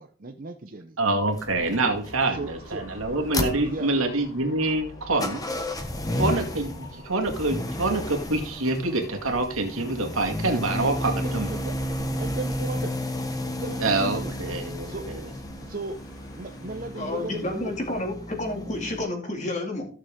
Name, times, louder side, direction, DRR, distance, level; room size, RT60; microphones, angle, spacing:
voice 1, 0.0-1.0 2.3-2.8 3.6-3.9 10.5-11.7 12.2-13.0 13.5-14.3 14.8-16.0 16.4-17.7, right 3 dB, 40° right, 0.7 m, -36 dB
voice 2, 1.0-5.4 6.2-11.5 13.8-15.2, right 2 dB, 80° right, 2.1 m, -26 dB
sound 1, 1.2-19.1, left 1 dB, 15° left, 1.1 m, -33 dB
Dog / Motorcycle, 1.3-18.0, left 1 dB, 75° left, 3.7 m, -49 dB
voice 3, 17.0-19.9, left 2 dB, 35° left, 2.5 m, -30 dB
15.0 x 6.7 x 3.7 m
head